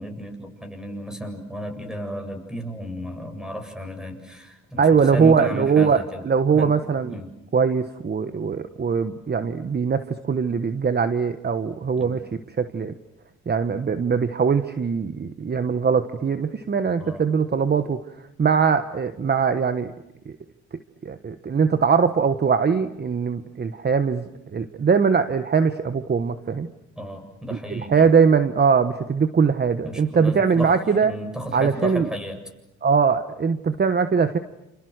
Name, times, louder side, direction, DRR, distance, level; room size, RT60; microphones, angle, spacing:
voice 1, 0.0-6.2 6.5-6.8 7.1-7.3 12.0-12.2 17.0-17.3 27.0-28.1 29.8-30.8 31.0-32.4, equal, ahead, 5 dB, 7.7 m, -33 dB
voice 2, 4.8-7.2 7.5-12.2 12.6-12.9 13.5-18.0 18.4-19.9 21.0-26.7 27.5-31.1 31.5-32.1 32.8-34.4, right 6 dB, 35° right, 10 dB, 1.2 m, -21 dB
29.5 x 29.0 x 6.6 m, 0.90 s
cardioid pair, 90°, 30 cm